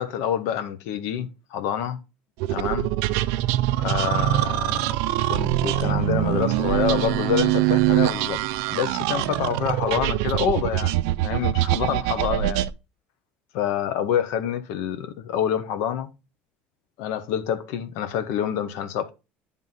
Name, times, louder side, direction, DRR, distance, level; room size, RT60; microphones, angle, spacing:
voice 1, 0.0-2.0 2.5-2.9 3.8-5.0 5.3-8.4 8.7-12.6 13.5-16.1 17.0-19.1, left 9 dB, 75° left, 1.0 m, -27 dB
sound 1, 2.4-12.7, right 15 dB, 80° right, 0.4 m, -23 dB
9.1 x 3.7 x 4.0 m
supercardioid pair, 105°, 5 cm